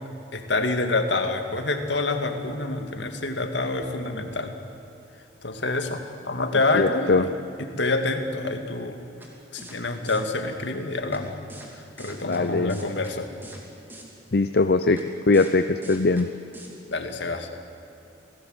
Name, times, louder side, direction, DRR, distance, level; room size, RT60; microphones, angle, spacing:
voice 1, 0.3-4.5 5.4-7.3 7.6-9.0 9.5-11.4 11.7-13.3 16.9-17.5, left 3 dB, 70° left, 5 dB, 2.1 m, -27 dB
voice 2, 6.7-7.2 12.3-12.8 14.3-15.0 15.3-16.3, left 3 dB, 55° left, 9 dB, 0.6 m, -21 dB
sound 1, 9.2-9.3 9.6-9.8 10.1-10.2 11.1-11.2 11.5-11.7 12.0-12.4 12.7-13.1 13.4-13.6 13.9-14.0 15.0-15.1 15.3-15.5 15.8-16.2 16.5-16.7, right 1 dB, 10° right, 2.8 m, -43 dB
27.5 x 17.5 x 8.0 m, 2.8 s
head